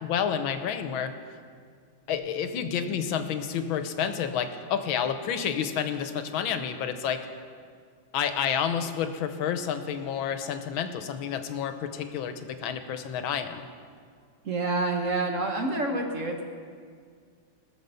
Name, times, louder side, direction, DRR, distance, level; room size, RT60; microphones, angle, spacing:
voice 1, 0.0-1.1 2.1-7.2 8.1-13.6, left 8 dB, 85° left, 8 dB, 1.6 m, -29 dB
voice 2, 14.4-16.4, right 2 dB, 50° right, 3 dB, 1.1 m, -28 dB
19.0 x 6.8 x 6.9 m, 2.1 s
omnidirectional pair, 2.2 m